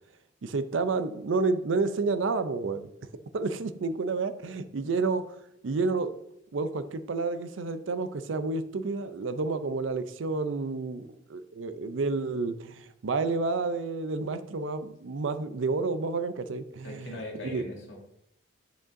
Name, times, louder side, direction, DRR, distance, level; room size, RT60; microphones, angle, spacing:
voice 1, 0.4-2.9 3.3-5.4 5.6-6.1 6.5-17.1 17.4-17.6, right 3 dB, 75° right, 12 dB, 0.5 m, -30 dB
voice 2, 16.8-18.0, left 1 dB, 70° left, -1 dB, 1.9 m, -39 dB
6.6 x 6.2 x 2.6 m, 0.79 s
head